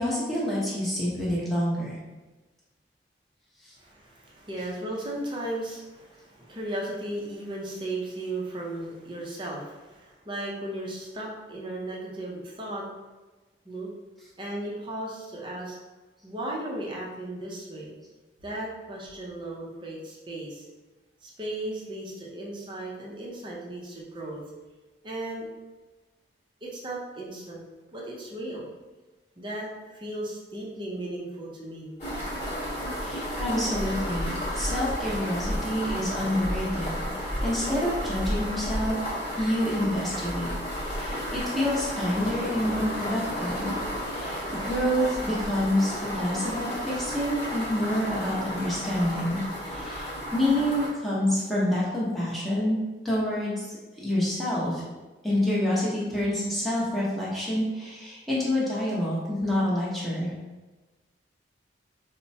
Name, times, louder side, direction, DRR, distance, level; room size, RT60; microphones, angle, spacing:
voice 1, 0.0-2.0 33.0-37.0 37.4-39.0 39.4-40.5 40.8-43.7 44.1-52.8 53.0-53.7 54.0-54.8 55.2-60.3, left 1 dB, ahead, -8 dB, 0.8 m, -27 dB
voice 2, 3.8-12.9 13.6-13.9 14.4-15.8 16.2-17.9 18.4-20.7 21.2-24.4 25.0-25.5 26.6-27.6 27.9-28.7 29.4-32.0, right 1 dB, 25° right, -3 dB, 0.6 m, -36 dB
sound 1, 32.0-50.9, equal, 40° left, 0.9 m, -32 dB
sound 2, 42.0-47.1, left 1 dB, 60° left, 0.5 m, -42 dB
4.2 x 2.1 x 2.7 m, 1.2 s
head